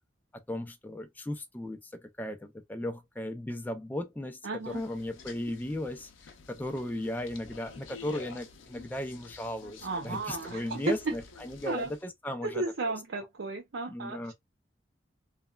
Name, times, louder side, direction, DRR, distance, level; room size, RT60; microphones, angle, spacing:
voice 1, 0.5-12.9 13.9-14.3, left 1 dB, 10° left, 0.4 m, -36 dB
voice 2, 4.4-4.8 9.8-11.1 11.7-11.9 12.4-14.3, right 3 dB, 75° right, 0.5 m, -33 dB
sound 1, 4.6-12.0, left 4 dB, 90° left, 0.5 m, -50 dB
3.1 x 2.2 x 2.2 m
head